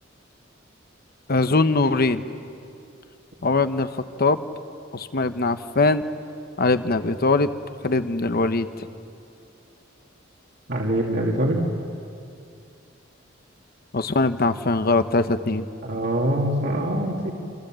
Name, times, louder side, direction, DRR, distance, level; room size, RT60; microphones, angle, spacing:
voice 1, 1.3-2.2 3.4-3.9 4.2-4.4 4.9-6.0 6.6-7.5 7.8-8.7 13.9-15.7, left 3 dB, 50° left, 10 dB, 1.0 m, -21 dB
voice 2, 10.7-11.6 15.8-17.3, right 1 dB, 60° right, -2 dB, 2.6 m, -24 dB
29.0 x 26.5 x 7.7 m, 2.5 s
head